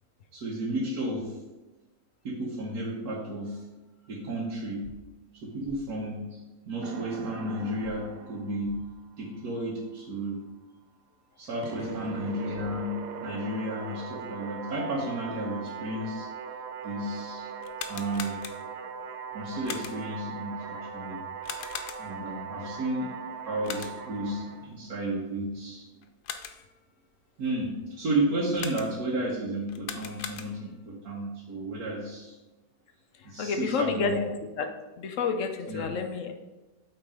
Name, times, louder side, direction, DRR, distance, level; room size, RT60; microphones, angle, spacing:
voice 1, 0.3-1.4 2.2-3.6 4.0-4.8 5.3-8.7 9.2-10.4 11.4-16.3 16.8-17.5 17.9-18.4 19.3-21.2 22.0-23.1 23.4-25.9 27.4-32.4 33.2-34.2 35.7-35.9, right 1 dB, 70° right, -5 dB, 1.6 m, -32 dB
sound 1, 4.8-5.0 5.6-5.8 7.8-8.0 8.6-8.8, right 2 dB, 55° right, 0.9 m, -47 dB
sound 2, 6.8-9.3 11.6-24.7, right 6 dB, 90° right, 1.3 m, -40 dB
sound 3, 17.6-18.9 19.6-20.2 21.4-22.3 23.6-24.2 26.0-26.8 28.5-29.2 29.7-30.8, left 8 dB, 85° left, 1.2 m, -40 dB
voice 2, 33.1-34.7 35.0-36.3, left 5 dB, 60° left, 6 dB, 0.9 m, -30 dB
8.6 x 3.8 x 4.9 m, 1.1 s
omnidirectional pair, 1.7 m